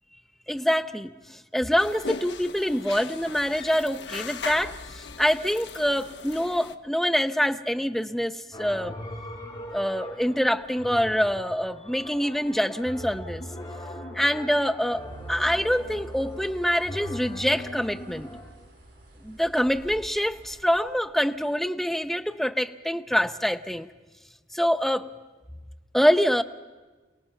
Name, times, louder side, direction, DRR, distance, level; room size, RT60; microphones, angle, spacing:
voice 1, 0.5-9.0 9.7-13.4 14.1-18.3 19.2-23.9 24.5-25.1 25.9-26.4, equal, ahead, 9 dB, 0.6 m, -25 dB
sound 1, 1.8-6.8, left 5 dB, 75° left, 0.9 m, -38 dB
sound 2, 8.5-18.4, equal, 25° left, 7.2 m, -40 dB
Bird, 14.8-21.0, right 1 dB, 70° right, 6.9 m, -52 dB
28.5 x 18.0 x 5.8 m, 1.3 s
head